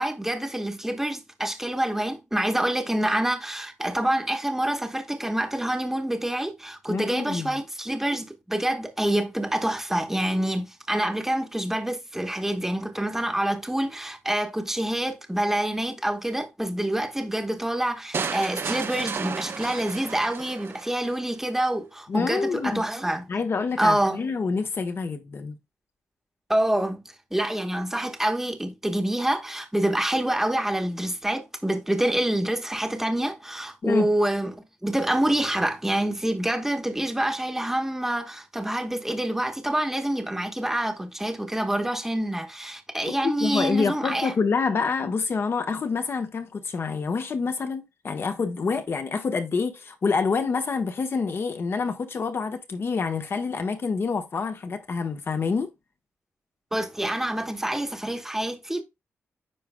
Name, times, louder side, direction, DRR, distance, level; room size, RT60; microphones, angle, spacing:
voice 1, 0.0-23.3 23.8-24.2 26.5-27.0 27.3-44.3 56.7-58.8, right 1 dB, 5° right, 1.1 m, -27 dB
voice 2, 6.9-7.5 22.1-22.8 23.3-25.5 33.8-34.1 43.1-55.7, left 5 dB, 55° left, 1.1 m, -27 dB
sound 1, 18.1-21.1, right 5 dB, 55° right, 0.7 m, -32 dB
9.0 x 4.8 x 2.2 m
cardioid pair, 65°, 5 cm